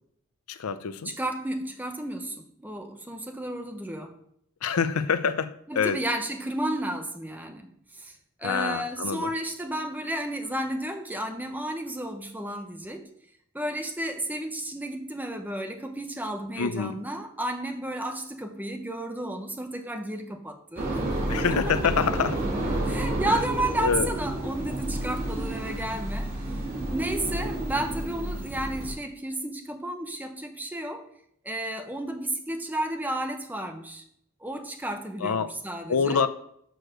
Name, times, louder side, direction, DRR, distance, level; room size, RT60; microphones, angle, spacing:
voice 1, 0.5-1.1 4.6-6.0 8.4-9.3 16.6-17.0 21.3-22.4 23.3-23.4 23.8-24.1 35.2-35.5 35.9-36.3, left 6 dB, 90° left, 0.5 m, -26 dB
voice 2, 1.0-4.1 5.7-7.7 7.9-13.1 13.5-20.9 22.8-26.3 26.9-31.1 31.4-34.0 34.4-36.2, right 1 dB, 10° right, 0.8 m, -32 dB
sound 1, 20.8-28.9, right 1 dB, 45° right, 2.6 m, -30 dB
6.3 x 4.9 x 6.4 m
head